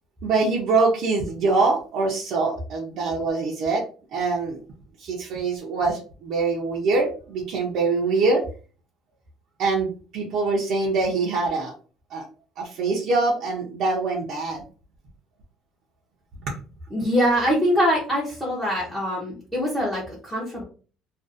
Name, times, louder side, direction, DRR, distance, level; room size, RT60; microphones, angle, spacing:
voice 1, 0.2-3.8 4.1-4.6 5.0-8.4 9.6-11.7 12.1-12.3 12.6-14.6 16.4-16.6, right 3 dB, 50° right, -3 dB, 0.5 m, -24 dB
voice 2, 16.9-20.6, equal, ahead, -6 dB, 0.6 m, -23 dB
2.5 x 2.4 x 2.4 m, 0.38 s
cardioid pair, 170°, 0 cm